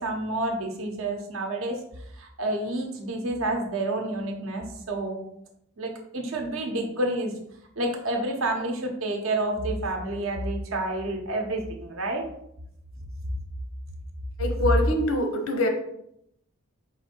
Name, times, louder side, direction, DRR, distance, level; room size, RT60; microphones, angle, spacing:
voice 1, 0.0-1.8 2.1-5.2 5.8-7.3 7.8-12.2, right 2 dB, 70° right, 2 dB, 0.8 m, -29 dB
voice 2, 14.4-15.7, left 1 dB, 75° left, 5 dB, 0.8 m, -24 dB
4.2 x 2.6 x 4.2 m, 0.75 s
head